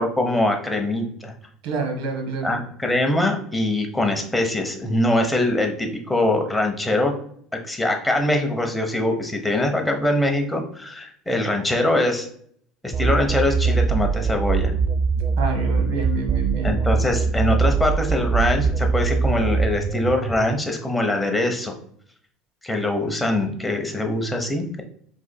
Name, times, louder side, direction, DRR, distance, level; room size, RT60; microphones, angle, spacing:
voice 1, 0.0-1.3 2.4-7.1 7.6-12.3 12.8-14.7 16.6-21.7 22.6-24.8, left 1 dB, 5° left, 3 dB, 1.0 m, -23 dB
voice 2, 1.6-2.6 15.4-16.7, right 4 dB, 70° right, 3 dB, 1.2 m, -27 dB
sound 1, 12.9-20.5, right 5 dB, 30° right, 0.4 m, -22 dB
4.8 x 4.2 x 2.2 m, 0.63 s
supercardioid pair, 95°, 0 cm